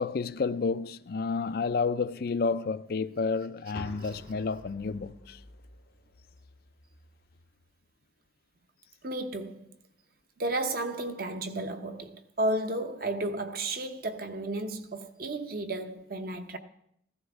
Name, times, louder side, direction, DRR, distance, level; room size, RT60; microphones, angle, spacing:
voice 1, 0.0-5.4, left 4 dB, 50° left, 0.4 m, -30 dB
sound 1, 3.7-7.7, left 1 dB, 85° left, 1.1 m, -49 dB
voice 2, 9.0-9.7 10.4-16.6, right 2 dB, 50° right, 0.9 m, -33 dB
15.0 x 12.5 x 3.6 m
head